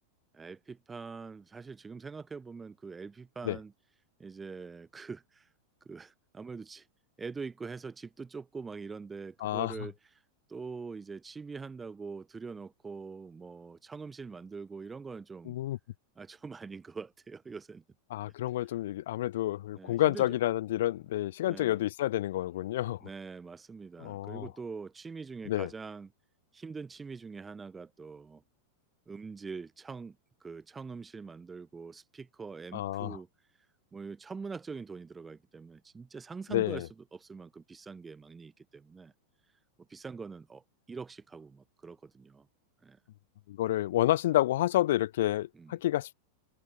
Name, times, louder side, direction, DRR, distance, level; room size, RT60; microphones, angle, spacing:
voice 1, 0.3-3.7 4.2-5.5 5.8-6.9 7.2-10.2 10.5-15.6 16.2-17.8 18.6-18.8 19.8-20.4 21.5-21.8 23.0-26.1 26.5-28.4 29.1-30.2 30.4-33.3 33.9-39.1 39.9-42.5 42.8-43.0 45.5-45.8, right 4 dB, 15° right, 2.1 m, -44 dB
voice 2, 9.4-9.7 15.5-15.8 18.1-23.0 24.0-24.5 25.5-25.7 32.7-33.2 36.5-36.9 43.5-46.1, left 14 dB, 55° left, 2.2 m, -29 dB
figure-of-eight pair, 90°, 0 cm